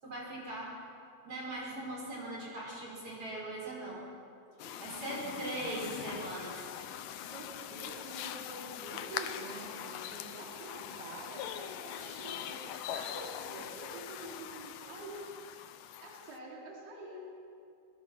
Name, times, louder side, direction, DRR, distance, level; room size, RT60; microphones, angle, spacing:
voice 1, 0.0-0.7 1.2-4.0 4.8-6.7, right 1 dB, 35° right, -4 dB, 6.9 m, -40 dB
sound 1, 4.6-16.4, left 10 dB, 75° left, 2.1 m, -42 dB
voice 2, 7.3-15.3 16.0-17.2, right 2 dB, 70° right, -3 dB, 5.6 m, -47 dB
24.5 x 21.5 x 5.9 m, 2.5 s
omnidirectional pair, 4.7 m